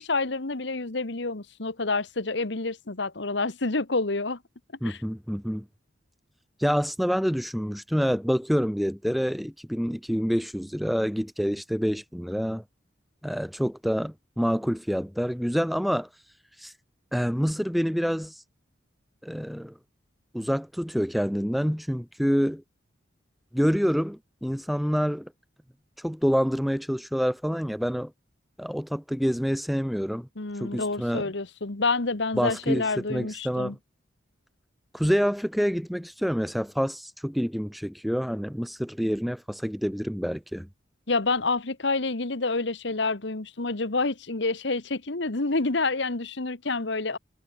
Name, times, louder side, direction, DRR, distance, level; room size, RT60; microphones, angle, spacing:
voice 1, 0.0-4.4 4.8-5.0 30.4-33.7 41.1-47.2, left 3 dB, 65° left, 1.4 m, -28 dB
voice 2, 4.8-5.7 6.6-12.6 13.2-16.1 16.6-16.7 17.1-18.3 19.2-19.7 20.3-22.6 23.5-25.3 26.0-28.1 28.6-30.3 30.6-31.3 32.3-33.8 34.9-40.7, equal, ahead, 0.6 m, -27 dB
head